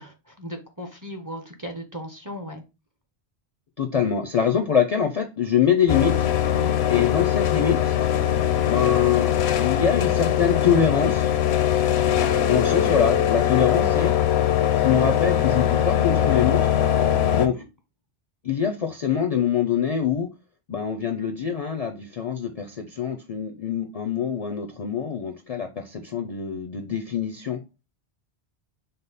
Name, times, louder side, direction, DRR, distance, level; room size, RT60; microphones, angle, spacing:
voice 1, 0.0-2.6 17.3-17.6, equal, 25° right, 0.5 m, -37 dB
voice 2, 3.8-6.2 6.9-8.0 8.7-11.3 12.4-14.1 14.8-16.6 17.3-17.6 18.4-20.3 20.7-27.6, left 7 dB, 50° left, 0.4 m, -24 dB
sound 1, 5.9-17.5, left 10 dB, 85° left, 0.8 m, -21 dB
5.2 x 2.0 x 3.9 m
omnidirectional pair, 1.1 m